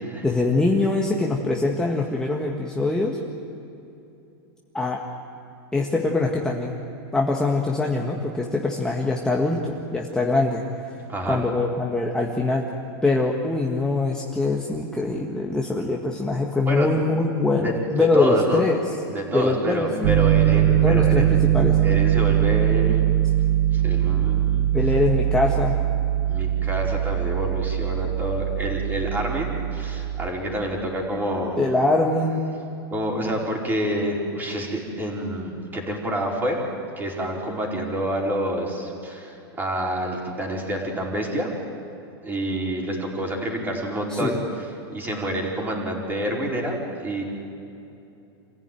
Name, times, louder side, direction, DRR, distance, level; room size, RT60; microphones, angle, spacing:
voice 1, 0.2-3.2 4.7-5.0 5.7-6.7 7.1-10.6 11.2-12.6 13.0-18.8 19.3-20.1 20.8-21.8 24.7-25.8 31.6-32.4 44.1-44.4, left 2 dB, 5° left, -1 dB, 1.6 m, -23 dB
voice 2, 11.1-11.4 16.6-16.9 17.6-17.7 18.0-18.7 19.1-21.4 21.8-23.2 23.7-24.9 26.3-31.6 32.9-36.6 37.0-41.5 42.2-47.2, equal, 15° right, -1 dB, 4.7 m, -28 dB
Piano, 20.0-30.3, right 12 dB, 60° right, 1.3 m, -21 dB
27.5 x 16.0 x 9.3 m, 2.8 s
supercardioid pair, 140°, 13 cm